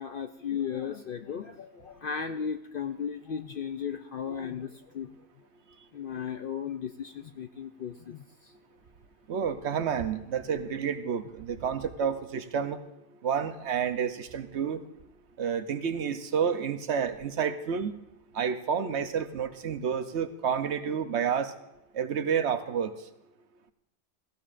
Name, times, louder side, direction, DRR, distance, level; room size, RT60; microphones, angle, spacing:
voice 1, 0.0-5.1 5.9-8.5, left 7 dB, 60° left, 7 dB, 0.6 m, -36 dB
voice 2, 9.3-12.8 13.2-14.8 15.4-18.0 18.3-21.5 21.9-22.9, right 7 dB, 65° right, 10 dB, 1.0 m, -30 dB
17.5 x 15.5 x 2.5 m, 0.92 s
omnidirectional pair, 1.3 m